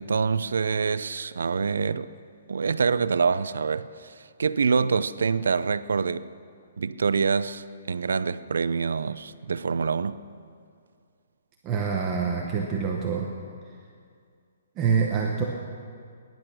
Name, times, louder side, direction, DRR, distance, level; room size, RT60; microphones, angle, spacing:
voice 1, 0.0-2.1 2.5-6.3 6.8-10.2, right 5 dB, 85° right, 0.6 m, -26 dB
voice 2, 11.6-13.3 14.8-15.4, right 6 dB, 15° right, 0.9 m, -26 dB
20.5 x 11.0 x 6.2 m
hypercardioid pair, 180°, 0 cm